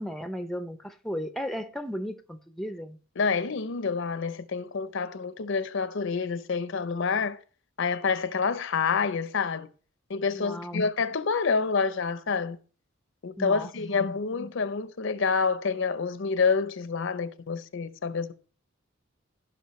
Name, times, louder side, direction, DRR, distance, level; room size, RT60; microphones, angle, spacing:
voice 1, 0.0-3.0 10.4-10.8 13.4-13.7, equal, ahead, 0.5 m, -35 dB
voice 2, 3.2-7.4 7.8-9.7 10.1-12.6 13.2-18.3, left 5 dB, 65° left, 0.6 m, -28 dB
15.5 x 5.4 x 3.1 m
head